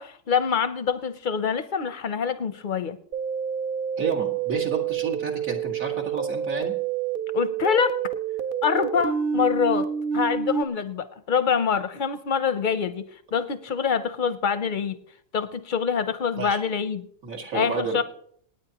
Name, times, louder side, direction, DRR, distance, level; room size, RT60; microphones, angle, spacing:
voice 1, 0.0-3.0 7.3-8.0 8.6-15.0 15.3-17.1 17.5-18.0, left 6 dB, 50° left, 12 dB, 0.6 m, -25 dB
sound 1, 3.1-10.6, right 8 dB, 55° right, 0.6 m, -28 dB
voice 2, 4.0-6.7 16.4-16.6 17.2-18.0, right 5 dB, 80° right, -1 dB, 2.5 m, -30 dB
27.5 x 9.3 x 2.9 m, 0.64 s
omnidirectional pair, 1.4 m